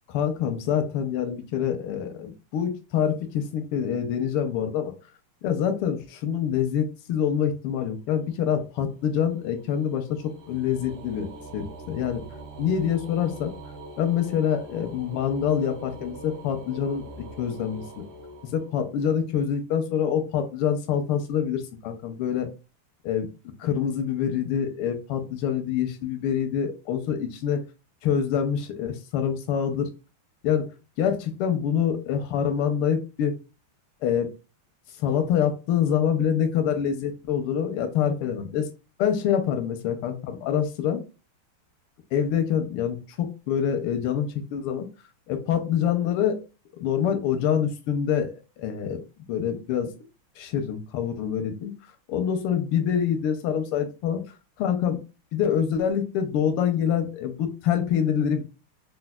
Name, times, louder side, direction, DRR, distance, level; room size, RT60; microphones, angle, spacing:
voice 1, 0.1-4.9 5.4-12.2 12.6-13.5 14.0-18.0 18.5-22.5 23.0-23.3 23.6-27.6 28.0-29.9 30.4-30.7 31.0-33.4 34.0-34.3 35.0-38.7 39.0-41.0 42.1-44.8 45.3-46.4 46.8-49.0 49.3-49.9 50.4-51.7 52.1-54.2 54.6-55.0 55.3-58.4, left 8 dB, 85° left, 6 dB, 1.5 m, -26 dB
sound 1, 8.2-19.1, right 2 dB, 70° right, 1.6 m, -43 dB
4.4 x 2.2 x 2.2 m, 0.30 s
omnidirectional pair, 2.4 m